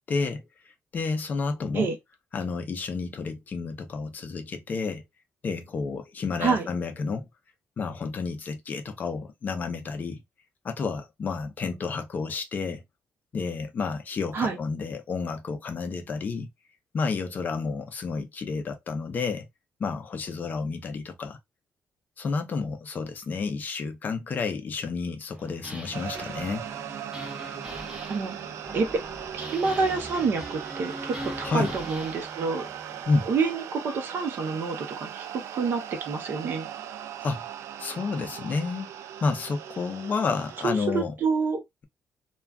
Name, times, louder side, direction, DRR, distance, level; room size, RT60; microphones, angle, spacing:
voice 1, 0.1-0.4 0.9-1.9 2.3-5.0 5.4-7.3 7.8-10.2 10.6-12.8 13.3-16.5 16.9-19.5 19.8-21.4 22.2-26.7 31.4-31.7 33.1-33.3 37.2-37.4 37.8-38.9 39.2-41.1, left 4 dB, 35° left, 0.5 m, -30 dB
sound 1, 25.3-33.0, equal, 10° right, 0.8 m, -41 dB
sound 2, 25.9-40.7, right 10 dB, 80° right, 0.3 m, -39 dB
voice 2, 29.3-32.7 33.2-36.7 40.6-41.6, right 4 dB, 45° right, 0.7 m, -28 dB
2.3 x 2.2 x 3.5 m
cardioid pair, 175°, 5 cm